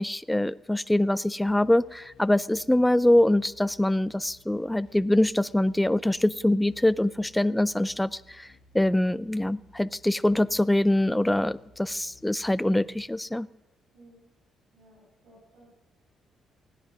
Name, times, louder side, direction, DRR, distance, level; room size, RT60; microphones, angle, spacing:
voice 1, 0.0-8.5 8.7-13.5, left 1 dB, 5° left, 18 dB, 0.4 m, -24 dB
sound 1, 1.5-13.1, left 1 dB, 70° left, 2.1 m, -58 dB
voice 2, 13.9-14.3 14.7-15.7, right 1 dB, 75° right, -4 dB, 7.0 m, -56 dB
16.5 x 9.9 x 6.1 m, 1.0 s
cardioid pair, 90°, 0 cm